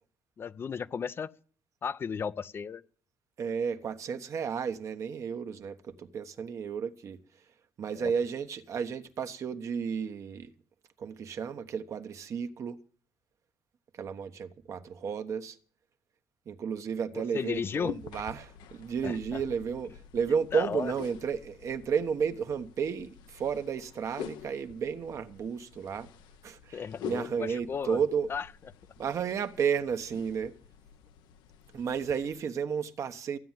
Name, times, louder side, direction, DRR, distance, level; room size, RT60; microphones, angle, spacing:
voice 1, 0.4-1.3 1.8-2.8 7.9-8.1 17.3-17.9 19.0-19.4 20.5-20.9 26.7-28.0 28.3-28.5, left 6 dB, 30° left, 0.6 m, -34 dB
voice 2, 3.4-7.2 7.8-10.5 11.0-12.8 14.0-15.6 16.5-26.1 26.4-28.3 29.0-30.5 31.7-33.4, right 6 dB, 45° right, 1.1 m, -32 dB
sound 1, 17.5-32.4, left 10 dB, 80° left, 0.9 m, -48 dB
14.5 x 9.3 x 7.4 m
cardioid pair, 135°, 7 cm